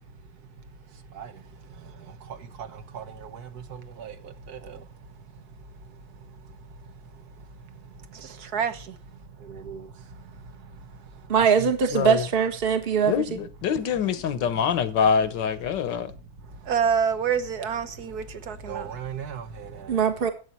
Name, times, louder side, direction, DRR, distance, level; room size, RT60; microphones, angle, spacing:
voice 1, 1.1-4.9 5.3-5.4 6.1-6.4 6.9-7.2 7.7-11.3 11.6-11.7 13.4-13.5 14.4-14.7 16.0-16.1 16.5-20.0, right 7 dB, 55° right, 1.6 m, -32 dB
voice 2, 11.3-13.2 19.9-20.3, right 7 dB, 30° right, 1.5 m, -22 dB
voice 3, 11.9-12.2 13.1-16.1, left 7 dB, 70° left, 1.6 m, -25 dB
12.5 x 8.4 x 4.4 m
omnidirectional pair, 2.1 m